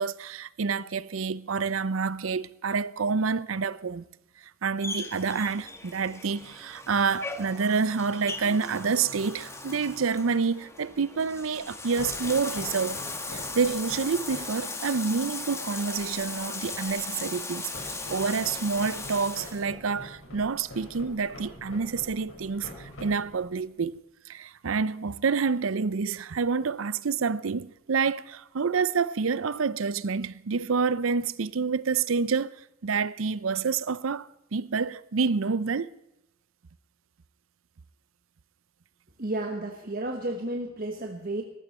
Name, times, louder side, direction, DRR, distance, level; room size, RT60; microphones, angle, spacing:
voice 1, 0.0-4.0 4.6-13.0 13.3-32.5 32.8-35.9, right 5 dB, 75° right, 0.6 m, -28 dB
Bathtub (filling or washing), 4.8-19.6, left 3 dB, 15° left, 1.5 m, -38 dB
sound 1, 12.0-14.6 17.7-23.6, left 1 dB, 75° left, 5.1 m, -45 dB
voice 2, 39.2-41.4, right 1 dB, 45° right, 1.3 m, -32 dB
19.0 x 14.0 x 4.3 m
head